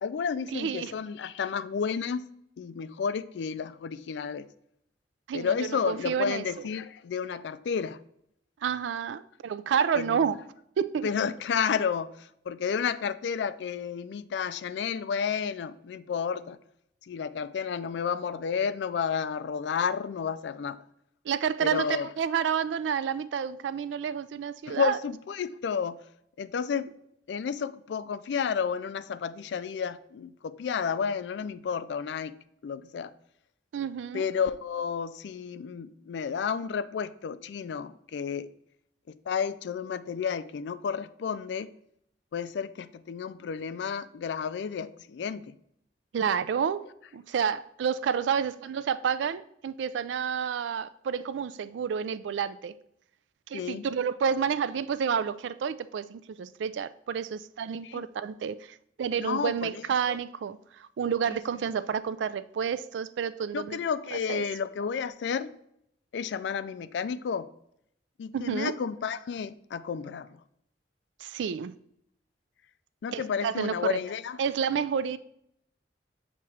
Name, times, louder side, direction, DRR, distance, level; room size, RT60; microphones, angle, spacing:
voice 1, 0.0-2.3 2.6-4.5 5.3-8.0 9.9-10.4 11.0-16.6 17.0-20.8 21.6-22.1 24.7-26.0 26.4-26.9 27.3-32.4 32.6-33.1 34.1-38.5 39.1-41.7 42.3-45.5 53.5-53.9 57.8-58.0 59.2-59.8 60.1-60.2 61.2-61.4 63.5-65.5 66.1-67.5 68.2-70.4 73.0-74.4, left 6 dB, 70° left, 0.3 m, -31 dB
voice 2, 0.5-0.9 5.3-6.5 8.6-10.4 10.8-11.1 21.3-25.0 33.7-34.2 46.1-46.8 47.1-52.7 53.5-63.8 64.1-64.4 68.3-68.7 71.2-71.7 73.1-74.0 74.4-75.2, right 7 dB, 85° right, 0.3 m, -30 dB
7.0 x 2.9 x 4.6 m
head